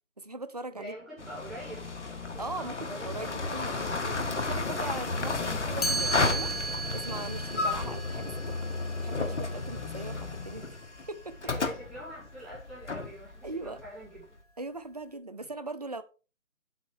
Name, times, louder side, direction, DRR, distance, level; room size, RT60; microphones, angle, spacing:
voice 1, 0.2-0.9 2.4-8.6 9.0-10.7 11.1-11.3 13.4-13.8 14.6-16.0, right 2 dB, 30° right, 0.6 m, -40 dB
voice 2, 0.7-1.9 2.2-3.4 4.5-4.9 11.4-14.2, right 1 dB, ahead, 2.8 m, -45 dB
sound 1, 1.2-14.2, left 3 dB, 65° left, 1.6 m, -33 dB
Chime, 5.8-11.7, right 3 dB, 30° left, 1.0 m, -37 dB
8.4 x 7.4 x 4.7 m
figure-of-eight pair, 160°, 38 cm